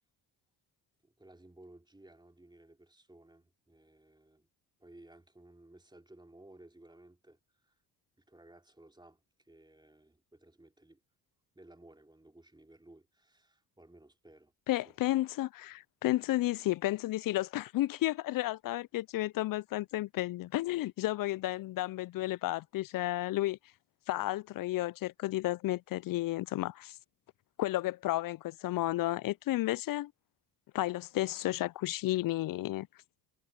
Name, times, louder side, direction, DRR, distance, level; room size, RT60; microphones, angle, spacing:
voice 1, 1.0-4.5 4.8-7.8 8.2-11.0 11.6-15.0, right 1 dB, 10° right, 3.5 m, -58 dB
voice 2, 14.7-23.6 24.1-27.0 27.6-30.1 30.7-32.9, left 16 dB, 50° left, 0.5 m, -32 dB
supercardioid pair, 65°, 43 cm